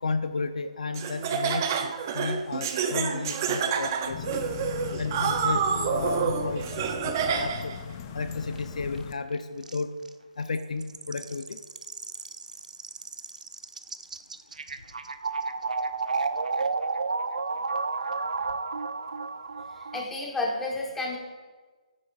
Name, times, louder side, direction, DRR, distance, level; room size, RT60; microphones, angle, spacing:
voice 1, 0.0-4.4 5.0-6.7 7.0-7.7 8.1-9.9 10.4-11.6, left 4 dB, 70° left, 8 dB, 0.7 m, -33 dB
Laughter, 0.9-7.8, right 7 dB, 25° right, 0.6 m, -28 dB
sound 1, 4.1-9.1, left 8 dB, 20° left, 0.5 m, -38 dB
sound 2, 8.6-8.7 9.0-9.1 9.3-9.4 9.6-10.1 10.5-20.1, right 4 dB, 80° right, 0.6 m, -32 dB
voice 2, 19.7-21.2, left 2 dB, 5° left, -2 dB, 1.3 m, -31 dB
14.5 x 9.5 x 2.5 m, 1.4 s
hypercardioid pair, 160°, 4 cm